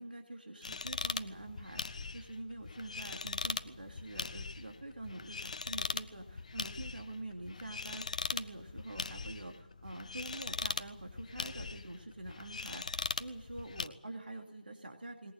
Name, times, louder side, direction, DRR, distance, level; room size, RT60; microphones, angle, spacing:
voice 1, 0.0-15.3, right 2 dB, 70° right, 4 dB, 2.6 m, -46 dB
sound 1, 0.6-13.9, left 4 dB, 45° left, 1.0 m, -41 dB
20.5 x 19.0 x 9.1 m, 0.93 s
figure-of-eight pair, 155°, 5 cm